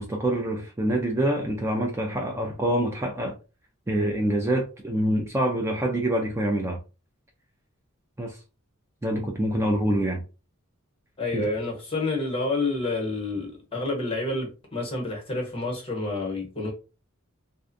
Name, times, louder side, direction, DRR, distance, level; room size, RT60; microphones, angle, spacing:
voice 1, 0.0-3.4 3.9-6.8 8.2-8.4 9.0-10.2 11.3-11.4, right 1 dB, 15° right, 0.4 m, -26 dB
voice 2, 11.2-16.7, left 2 dB, 25° left, 1.0 m, -29 dB
2.5 x 2.3 x 2.5 m
head